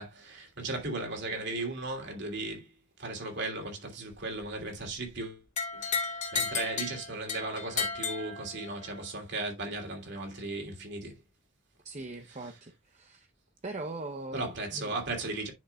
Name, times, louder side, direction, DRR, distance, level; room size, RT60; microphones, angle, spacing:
voice 1, 0.0-2.7 3.0-5.4 5.7-11.1 14.3-15.5, right 2 dB, 55° right, 3.0 m, -36 dB
sound 1, 5.6-8.9, left 4 dB, 35° left, 2.7 m, -33 dB
voice 2, 11.8-13.3 13.6-14.9, right 2 dB, 35° right, 0.7 m, -41 dB
9.4 x 6.5 x 2.3 m
head